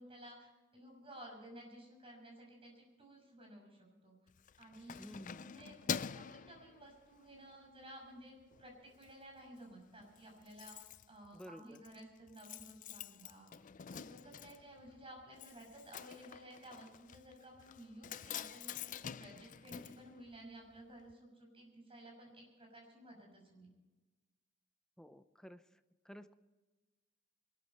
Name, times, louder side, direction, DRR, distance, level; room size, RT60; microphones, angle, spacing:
voice 1, 0.0-3.8 4.0-4.2 4.6-5.1 5.4-13.5 13.9-23.7, right 1 dB, 30° right, 1 dB, 6.2 m, -55 dB
Keys jangling, 4.3-7.4 7.8-8.1 8.4-9.1 9.4-9.5 9.7-9.8 10.0-20.8 21.1-21.2, left 8 dB, 40° left, 0.4 m, -47 dB
voice 2, 5.0-5.7 11.3-11.8 25.0-25.6 26.0-26.3, equal, 5° left, 10 dB, 0.7 m, -53 dB
23.0 x 13.0 x 4.4 m, 1.2 s
head